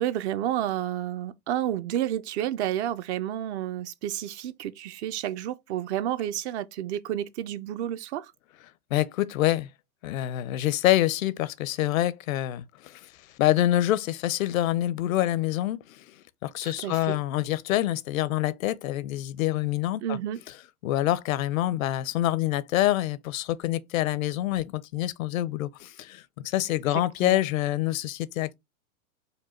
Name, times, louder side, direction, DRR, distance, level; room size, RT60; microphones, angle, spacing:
voice 1, 0.0-8.3 16.6-17.2 20.0-20.4 27.2-27.4, right 11 dB, 50° right, 0.5 m, -30 dB
voice 2, 8.9-9.7 10.0-13.1 13.4-16.0 16.4-20.2 20.8-28.5, left 14 dB, 65° left, 0.7 m, -26 dB
5.1 x 2.2 x 4.3 m
hypercardioid pair, 120°, 44 cm